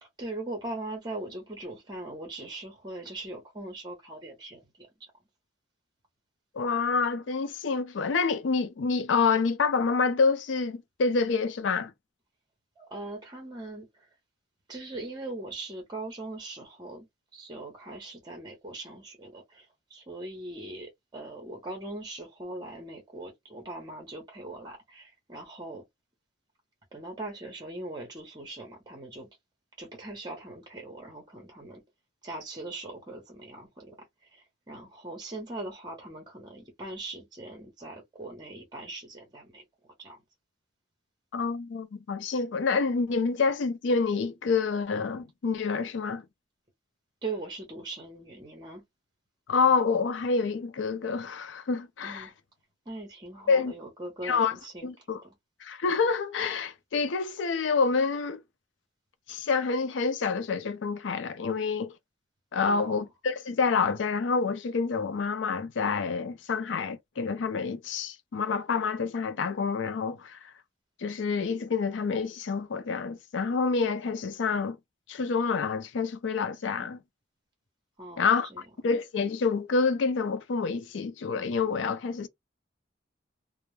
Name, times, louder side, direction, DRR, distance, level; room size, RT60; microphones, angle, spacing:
voice 1, 0.0-5.1 12.8-14.1 14.7-17.1 17.3-25.8 26.9-29.3 29.8-31.8 32.2-34.0 34.2-39.6 40.0-40.2 47.2-48.8 52.0-52.3 52.9-55.3 62.6-63.1 78.0-78.6, right 2 dB, 25° right, 0.8 m, -40 dB
voice 2, 6.5-11.9 41.3-46.2 49.5-52.3 53.5-53.7 54.2-54.5 54.8-55.2 55.6-58.4 59.3-61.9 62.5-70.4 71.0-74.8 75.1-77.0 78.2-78.5 78.8-82.3, left 4 dB, 80° left, 0.4 m, -27 dB
2.2 x 2.0 x 3.0 m
head